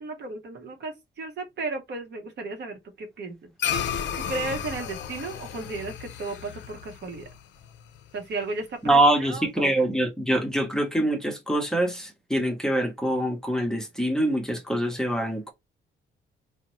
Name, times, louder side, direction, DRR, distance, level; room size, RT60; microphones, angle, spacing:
voice 1, 0.0-3.5 4.3-7.3 8.1-9.7, right 3 dB, 60° right, 0.8 m, -34 dB
sound 1, 3.6-8.2, left 8 dB, 65° left, 0.5 m, -33 dB
voice 2, 8.8-15.5, right 1 dB, 5° left, 0.7 m, -24 dB
2.6 x 2.0 x 2.9 m
cardioid pair, 90°, 20 cm